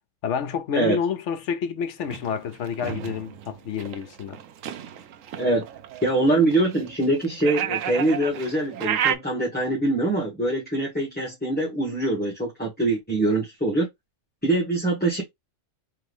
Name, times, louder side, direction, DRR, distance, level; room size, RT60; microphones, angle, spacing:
voice 1, 0.2-4.4, left 7 dB, 70° left, 1.0 m, -29 dB
sound 1, 2.0-9.2, right 10 dB, 90° right, 1.0 m, -32 dB
voice 2, 6.0-13.9 14.4-15.2, right 2 dB, 5° left, 1.5 m, -23 dB
3.6 x 3.4 x 3.5 m
omnidirectional pair, 1.3 m